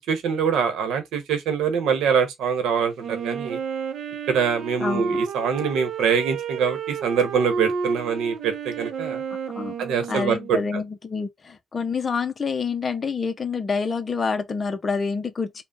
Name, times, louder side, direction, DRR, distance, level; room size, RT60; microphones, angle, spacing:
voice 1, 0.1-3.6 4.3-9.2 9.8-10.8, right 6 dB, 85° right, 0.9 m, -24 dB
Wind instrument woodwind instrument, 3.0-10.7, right 5 dB, 60° right, 0.6 m, -31 dB
voice 2, 4.8-5.2 9.5-9.7 10.1-15.6, left 5 dB, 25° left, 0.5 m, -27 dB
3.5 x 2.1 x 3.9 m
cardioid pair, 150°, 0 cm